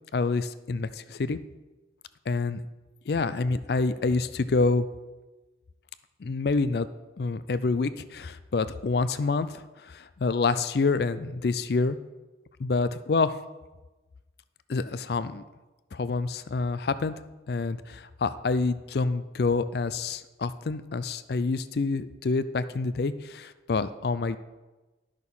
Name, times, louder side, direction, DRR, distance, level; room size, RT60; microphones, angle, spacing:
voice 1, 0.1-1.4 2.3-2.6 3.1-4.9 6.2-6.9 7.2-12.0 12.6-13.3 14.7-15.4 15.9-17.2 17.5-24.4, left 3 dB, 55° left, 14 dB, 0.4 m, -27 dB
10.5 x 6.4 x 5.4 m, 1.2 s
head